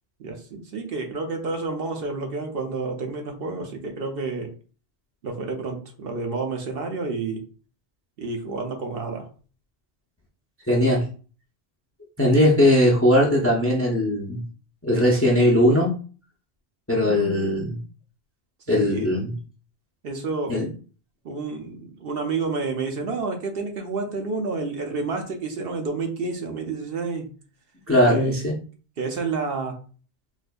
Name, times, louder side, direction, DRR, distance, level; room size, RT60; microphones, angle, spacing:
voice 1, 0.2-4.5 5.2-7.4 8.2-9.3 17.0-17.8 18.7-19.3 20.0-20.6 21.2-27.3 28.0-28.4 29.0-29.8, right 4 dB, 60° right, 3 dB, 0.8 m, -30 dB
voice 2, 10.7-11.1 12.2-14.4 14.8-15.9 16.9-17.8 18.7-19.3 20.5-20.7 27.9-28.5, left 1 dB, 15° left, -1 dB, 0.5 m, -19 dB
4.2 x 2.5 x 2.2 m, 0.38 s
omnidirectional pair, 1.2 m